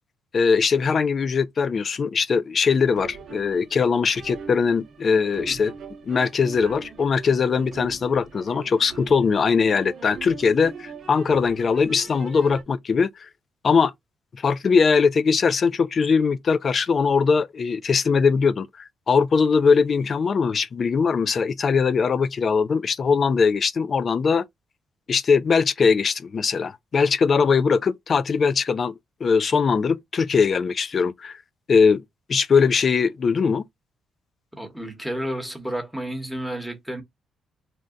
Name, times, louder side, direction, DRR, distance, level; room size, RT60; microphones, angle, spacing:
voice 1, 0.3-5.7 6.0-13.1 13.6-13.9 14.4-24.4 25.1-28.9 29.2-31.4 31.7-32.0 32.3-33.7, left 5 dB, 45° left, 0.3 m, -21 dB
sound 1, 2.9-12.6, right 6 dB, 60° right, 0.7 m, -41 dB
voice 2, 34.5-37.0, right 1 dB, ahead, 1.1 m, -31 dB
2.6 x 2.2 x 3.6 m
cardioid pair, 90°, 0 cm